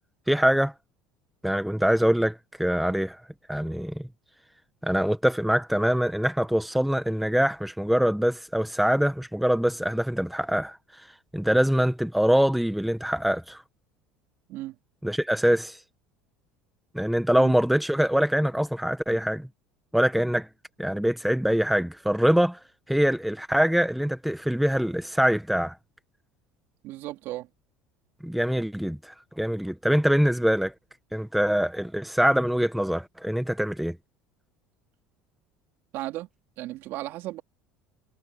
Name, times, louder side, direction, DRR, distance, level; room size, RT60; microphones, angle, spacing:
voice 1, 0.3-0.7 1.4-3.2 3.5-4.1 4.8-11.1 11.3-13.6 15.0-15.8 16.9-19.5 19.9-20.5 20.8-25.8 28.2-30.7 31.1-34.0, equal, ahead, 1.2 m, -24 dB
voice 2, 26.8-27.5 35.9-36.3 36.6-37.4, right 16 dB, 60° right, 4.2 m, -35 dB
supercardioid pair, 115°, 4 cm